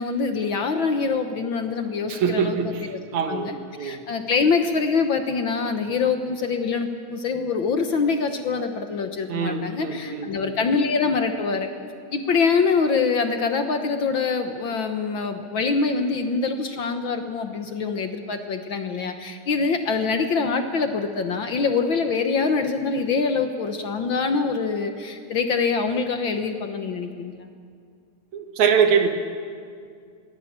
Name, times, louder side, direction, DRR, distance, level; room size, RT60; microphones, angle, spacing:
voice 1, 0.0-3.0 3.3-11.7 12.1-27.5, left 4 dB, 65° left, 6 dB, 1.2 m, -24 dB
voice 2, 2.1-4.0 9.3-10.5 28.3-29.1, right 6 dB, 65° right, 6 dB, 2.8 m, -24 dB
23.5 x 17.5 x 8.8 m, 2.2 s
omnidirectional pair, 3.8 m